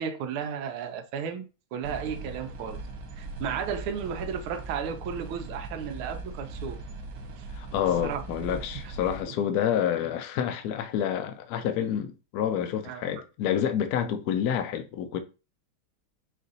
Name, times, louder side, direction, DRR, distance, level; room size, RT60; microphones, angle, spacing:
voice 1, 0.0-2.8 3.2-6.8 7.4-7.5 8.0-8.2 12.8-13.0, right 7 dB, 90° right, 1.5 m, -34 dB
sound 1, 1.8-9.2, right 3 dB, 60° right, 1.1 m, -40 dB
voice 2, 7.6-15.2, left 9 dB, 75° left, 0.8 m, -28 dB
4.8 x 2.5 x 3.9 m
omnidirectional pair, 2.3 m